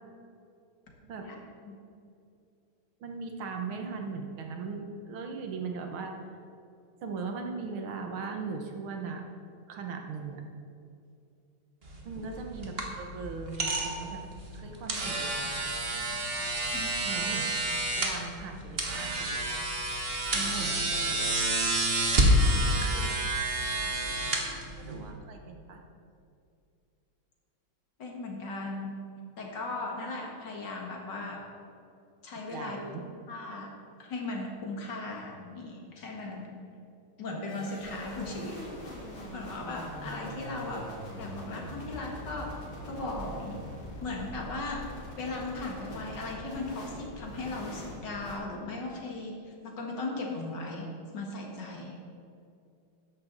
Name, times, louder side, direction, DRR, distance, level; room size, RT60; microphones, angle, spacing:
voice 1, 3.0-6.2 7.0-9.2 9.7-10.4 12.1-14.2 14.5-15.7 17.0-17.5 18.0-19.6 20.3-21.4 22.9-23.1 24.8-25.8 32.5-33.0, right 4 dB, 85° right, 3 dB, 2.1 m, -39 dB
sound 1, 11.8-25.1, right 1 dB, 30° right, 1.5 m, -29 dB
voice 2, 22.3-23.0 24.4-24.5 28.0-29.1 29.4-31.4 32.2-33.7 34.0-36.5 37.2-38.7 39.3-40.9 41.2-42.6 42.9-43.6 44.0-44.9 45.2-52.1, left 2 dB, 60° left, 0 dB, 2.4 m, -37 dB
sound 2, 37.5-48.4, equal, 90° left, 3.4 m, -43 dB
13.5 x 10.5 x 4.0 m, 2.5 s
omnidirectional pair, 2.2 m